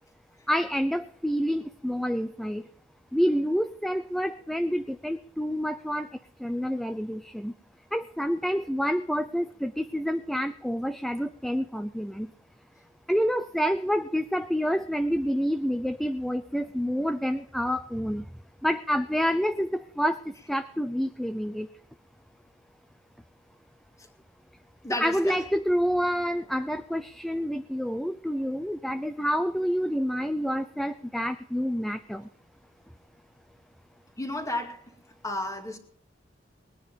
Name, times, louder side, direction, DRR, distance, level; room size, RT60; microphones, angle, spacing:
voice 1, 0.5-2.7 3.1-6.1 6.4-7.5 7.9-12.3 13.1-18.2 18.6-21.7 24.9-32.3, equal, ahead, 9 dB, 0.5 m, -28 dB
voice 2, 24.8-25.4 34.2-34.8 35.2-35.8, left 1 dB, 15° left, 4 dB, 2.2 m, -32 dB
20.0 x 10.0 x 5.1 m, 0.67 s
head